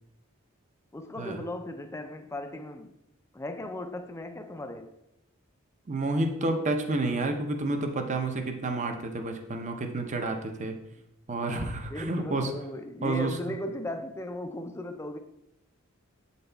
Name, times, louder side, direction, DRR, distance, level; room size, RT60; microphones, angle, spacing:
voice 1, 0.9-2.9 3.3-4.9 11.9-15.2, left 1 dB, 15° left, 0.4 m, -37 dB
voice 2, 5.9-10.8 11.3-12.5 13.0-13.4, right 2 dB, 35° right, 0.6 m, -30 dB
7.6 x 4.1 x 3.4 m
head